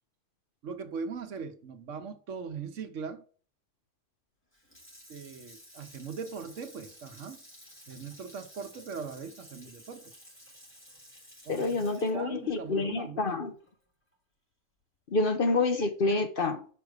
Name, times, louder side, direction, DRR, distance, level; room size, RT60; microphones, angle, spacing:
voice 1, 0.6-3.2 5.1-7.4 7.9-10.1 11.4-13.3, right 5 dB, 90° right, 1.3 m, -40 dB
Water tap faucet / Sink (filling or washing), 4.5-13.7 14.1-14.2, equal, 10° left, 3.2 m, -53 dB
voice 2, 11.5-13.5 15.1-16.7, left 3 dB, 50° left, 1.0 m, -28 dB
5.7 x 4.8 x 6.5 m
omnidirectional pair, 1.2 m